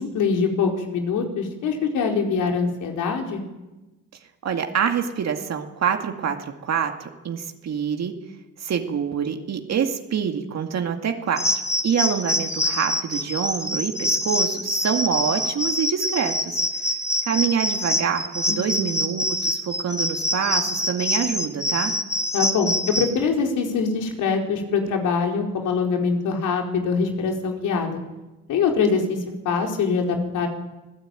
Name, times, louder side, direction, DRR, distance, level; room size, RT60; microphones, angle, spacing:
voice 1, 0.0-3.4 18.5-18.9 22.3-28.0 28.5-29.2 29.4-30.5, left 5 dB, 85° left, 2 dB, 4.4 m, -23 dB
voice 2, 4.4-8.1 8.6-16.6 17.2-21.9, right 7 dB, 60° right, 4 dB, 2.2 m, -26 dB
sound 1, 11.4-23.1, left 1 dB, 10° left, 2.7 m, -25 dB
25.5 x 16.5 x 9.1 m, 1.1 s
cardioid pair, 90°, 30 cm